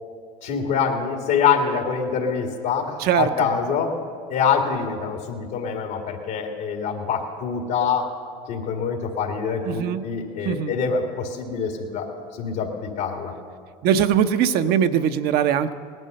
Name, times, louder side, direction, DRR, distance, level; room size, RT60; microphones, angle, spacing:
voice 1, 0.4-3.9 4.3-8.0 8.5-12.1 12.3-13.3, left 6 dB, 70° left, 2 dB, 2.1 m, -25 dB
voice 2, 3.0-3.3 9.6-10.0 10.4-10.8 13.8-15.7, right 9 dB, 60° right, 9 dB, 0.8 m, -21 dB
18.5 x 11.0 x 6.5 m, 2.2 s
supercardioid pair, 90°, 18 cm